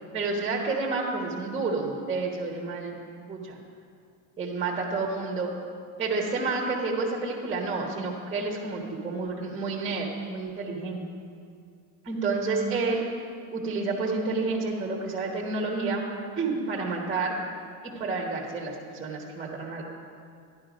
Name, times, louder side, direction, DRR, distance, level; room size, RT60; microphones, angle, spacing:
voice 1, 0.1-3.0 3.3-3.6 4.4-5.5 6.0-11.0 12.0-13.1 13.5-16.0 16.4-17.3 17.8-19.8, right 3 dB, 15° right, -1 dB, 1.2 m, -29 dB
12.5 x 11.0 x 5.2 m, 2.3 s
cardioid pair, 160°, 42 cm